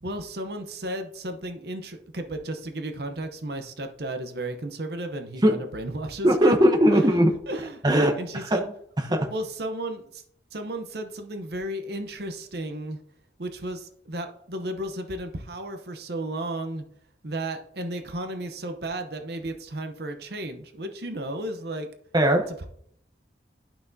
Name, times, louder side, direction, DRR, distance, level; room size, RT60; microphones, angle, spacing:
voice 1, 0.0-6.5 6.9-7.8 8.2-8.6 9.1-10.2 10.5-13.0 13.4-16.8 17.2-21.9 22.6-22.7, right 1 dB, 60° right, 6 dB, 0.8 m, -34 dB
voice 2, 6.2-7.3 7.8-8.7 9.0-9.3 22.1-22.5, equal, 20° right, 4 dB, 0.8 m, -20 dB
11.0 x 5.9 x 2.7 m, 0.66 s
head